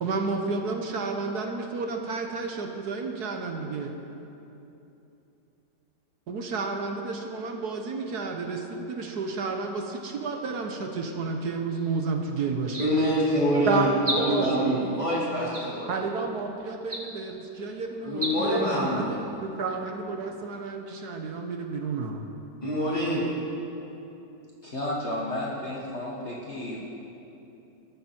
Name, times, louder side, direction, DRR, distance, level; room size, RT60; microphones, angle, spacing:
voice 1, 0.0-3.9 6.3-12.8 13.7-13.9 14.2-14.7 15.9-19.0 19.4-22.2, right 4 dB, 70° right, 3 dB, 1.6 m, -31 dB
sound 1, 11.7-12.0 12.6-13.2 14.0-14.6 15.5-16.1 16.8-17.4 18.1-18.4, equal, 20° right, 1.6 m, -34 dB
voice 2, 12.8-16.0 18.0-19.1 22.6-23.2, equal, 20° left, -8 dB, 4.4 m, -25 dB
voice 3, 24.6-26.8, left 1 dB, 40° left, -4 dB, 1.8 m, -32 dB
21.0 x 13.0 x 4.5 m, 2.9 s
omnidirectional pair, 1.8 m